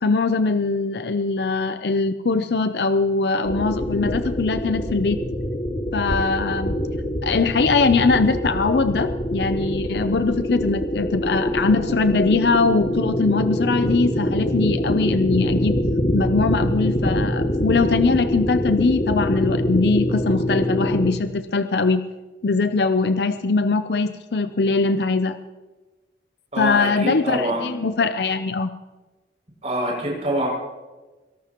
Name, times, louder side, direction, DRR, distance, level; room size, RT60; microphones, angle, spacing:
voice 1, 0.0-5.2 5.9-6.7 7.2-15.8 16.1-22.0 22.4-25.4 26.6-28.7, left 3 dB, 70° left, 10 dB, 0.6 m, -21 dB
sound 1, 3.4-21.1, equal, 50° left, 2.0 m, -24 dB
voice 2, 26.5-27.7 29.6-30.5, right 1 dB, 40° right, -1 dB, 6.6 m, -25 dB
22.5 x 18.0 x 3.0 m, 1.2 s
head